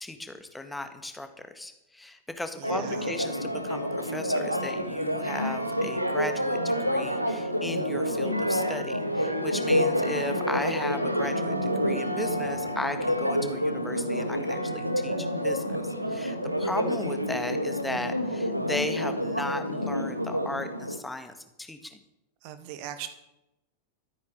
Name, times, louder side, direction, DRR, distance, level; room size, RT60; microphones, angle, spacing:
voice 1, 0.0-22.0, left 2 dB, 5° left, 8 dB, 1.7 m, -36 dB
voice 2, 2.6-3.1 22.4-23.1, right 11 dB, 45° right, 10 dB, 1.9 m, -39 dB
Church bell, 2.6-21.0, equal, 90° right, 1.4 m, -28 dB
13.5 x 9.6 x 9.4 m, 0.90 s
figure-of-eight pair, 90°, 0 cm